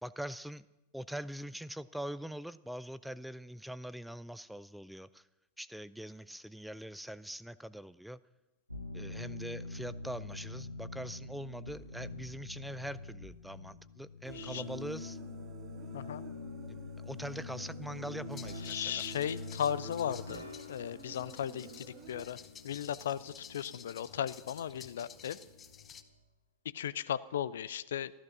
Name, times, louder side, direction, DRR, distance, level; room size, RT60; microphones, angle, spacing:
voice 1, 0.0-0.6 0.9-5.2 5.6-8.2 8.9-15.2 16.7-19.0, equal, ahead, 17 dB, 0.4 m, -43 dB
sound 1, 8.7-26.1, left 3 dB, 90° left, 1.2 m, -46 dB
Human voice, 14.2-22.2, right 10 dB, 30° right, 0.7 m, -52 dB
sound 2, 18.3-26.0, left 7 dB, 25° left, 0.8 m, -53 dB
voice 2, 18.7-20.4 20.7-22.4 22.6-25.4 26.7-28.1, left 9 dB, 60° left, 18 dB, 0.4 m, -36 dB
14.0 x 12.5 x 6.1 m, 1.0 s
figure-of-eight pair, 90°, 0 cm